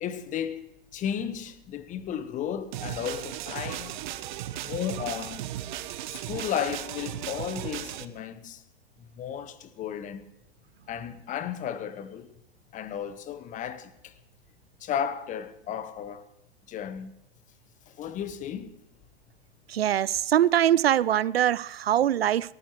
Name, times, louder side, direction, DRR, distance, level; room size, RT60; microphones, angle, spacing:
voice 1, 0.0-4.0 4.6-5.5 6.0-8.6 9.0-10.2 10.9-12.3 12.7-14.1 14.8-16.2 16.7-17.2 17.9-18.8, left 8 dB, 25° left, 1.2 m, -34 dB
sound 1, 2.7-8.1, right 13 dB, 50° right, 1.0 m, -36 dB
voice 2, 19.7-22.5, right 11 dB, 75° right, 0.5 m, -23 dB
30.0 x 14.0 x 3.2 m
figure-of-eight pair, 100°, 31 cm